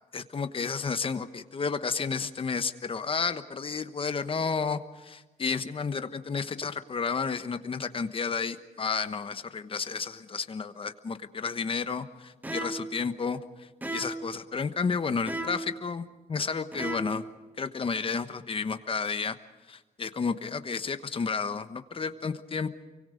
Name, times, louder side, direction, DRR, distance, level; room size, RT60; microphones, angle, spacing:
voice 1, 0.1-17.2 17.6-19.3 19.7-22.7, left 5 dB, 35° left, 10 dB, 1.2 m, -32 dB
sound 1, 12.4-12.9 13.8-14.3 15.3-15.8 16.7-17.3, right 1 dB, 10° right, 1.9 m, -35 dB
29.0 x 24.0 x 5.1 m, 1.2 s
wide cardioid pair, 170°, 15 cm